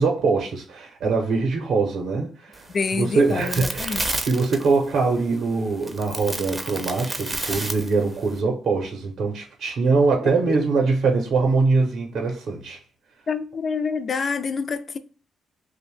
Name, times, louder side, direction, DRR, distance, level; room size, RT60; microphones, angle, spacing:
voice 1, 0.0-2.6 3.0-12.8, right 4 dB, 65° right, 0.6 m, -23 dB
sound 1, 2.5-8.4, right 2 dB, 20° right, 0.5 m, -32 dB
voice 2, 2.7-4.0 10.5-10.6 13.3-15.0, left 5 dB, 45° left, 0.3 m, -27 dB
2.6 x 2.0 x 3.1 m
cardioid pair, 90°, 0 cm